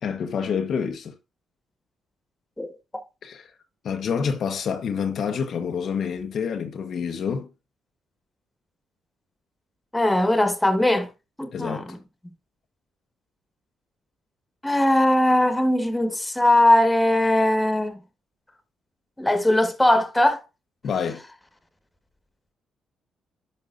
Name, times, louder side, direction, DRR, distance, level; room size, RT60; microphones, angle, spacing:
voice 1, 0.0-1.1 3.2-3.5 3.8-7.5 11.5-11.9 20.8-21.2, left 6 dB, 60° left, 1.0 m, -27 dB
voice 2, 2.6-3.0 9.9-11.1 11.4-12.0 14.6-18.0 19.2-20.4, left 1 dB, 10° left, 1.5 m, -20 dB
11.0 x 5.3 x 2.5 m
cardioid pair, 90°, 0 cm